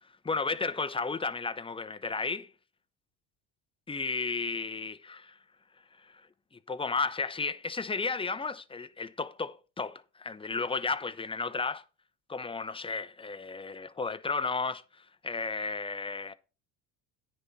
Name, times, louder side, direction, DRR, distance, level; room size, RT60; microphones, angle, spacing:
voice 1, 0.2-2.5 3.9-5.2 6.0-6.3 6.7-11.8 12.3-16.3, left 4 dB, 10° left, 0.6 m, -33 dB
9.7 x 4.2 x 5.9 m
supercardioid pair, 85°, 46 cm